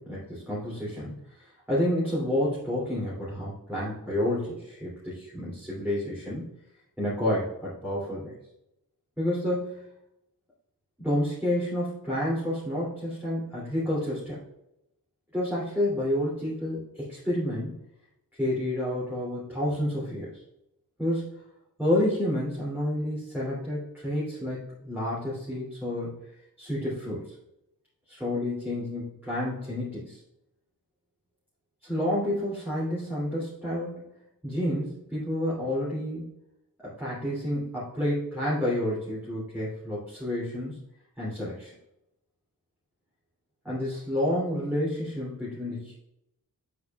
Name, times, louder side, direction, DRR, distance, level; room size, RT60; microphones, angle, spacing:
voice 1, 0.0-6.5 7.0-8.3 9.2-9.9 11.0-14.4 15.3-17.7 18.4-20.4 21.0-21.4 21.8-26.1 26.6-27.3 28.1-30.2 31.8-34.0 34.4-36.2 36.8-40.8 41.2-41.7 43.6-45.9, left 1 dB, 5° right, -9 dB, 2.8 m, -29 dB
8.5 x 8.2 x 2.4 m, 0.84 s
wide cardioid pair, 175°, 35 cm